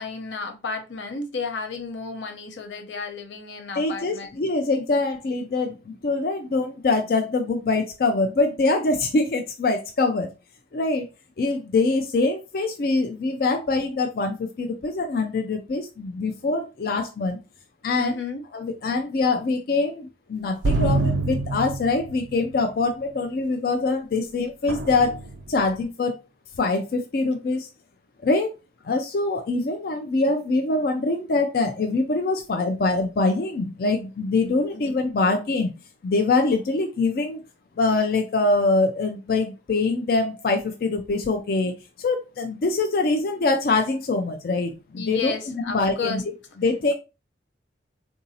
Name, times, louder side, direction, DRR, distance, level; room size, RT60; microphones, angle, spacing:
voice 1, 0.0-4.3 18.0-18.4 34.7-34.9 44.9-46.2, left 4 dB, 85° left, 0.7 m, -32 dB
voice 2, 3.8-10.3 10.7-11.1 11.4-17.4 17.8-18.2 18.5-25.2 25.5-26.2 26.6-27.7 28.2-28.5 28.8-35.7 36.0-37.4 37.8-45.3 45.7-46.2 46.6-46.9, left 3 dB, 55° left, 0.4 m, -24 dB
sound 1, 20.6-22.4 24.7-25.6, right 2 dB, 90° right, 0.4 m, -25 dB
3.8 x 2.7 x 2.7 m
head